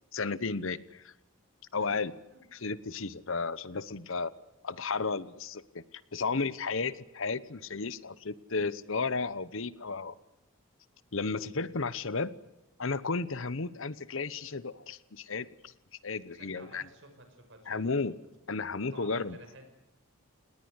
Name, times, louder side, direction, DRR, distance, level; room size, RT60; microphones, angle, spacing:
voice 1, 0.1-1.1 1.7-2.1 2.5-4.3 4.6-10.1 11.1-12.4 12.8-15.7 16.0-16.8 17.7-18.1 18.5-19.4, left 4 dB, 60° left, 17 dB, 0.9 m, -33 dB
voice 2, 16.3-17.9 18.9-19.7, right 2 dB, 55° right, 6 dB, 6.0 m, -52 dB
29.5 x 19.5 x 8.0 m, 0.90 s
head